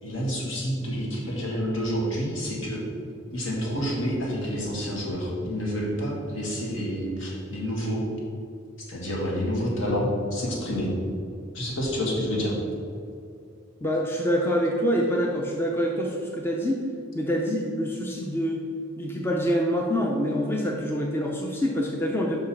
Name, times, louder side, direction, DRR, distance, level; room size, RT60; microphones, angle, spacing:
voice 1, 0.0-2.8 3.3-8.0 8.9-10.9 11.5-12.6, equal, 65° left, -3 dB, 1.9 m, -28 dB
voice 2, 13.8-16.8 17.1-18.6 19.0-22.4, equal, 10° left, -1 dB, 0.5 m, -26 dB
5.7 x 5.4 x 6.0 m, 2.4 s
head